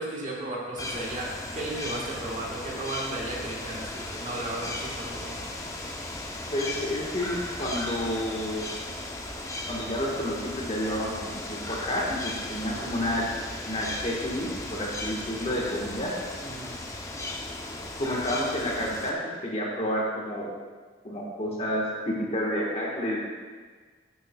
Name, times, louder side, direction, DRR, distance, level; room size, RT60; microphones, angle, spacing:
voice 1, 0.0-5.4 12.8-12.9 16.4-16.7, right 1 dB, 45° right, -2 dB, 1.5 m, -35 dB
sound 1, 0.8-19.1, left 2 dB, 15° left, 0.7 m, -36 dB
voice 2, 6.5-8.7 9.7-13.3 13.7-16.1 18.0-20.5 21.0-23.2, equal, 35° left, -3 dB, 1.5 m, -30 dB
11.0 x 7.4 x 2.3 m, 1.5 s
head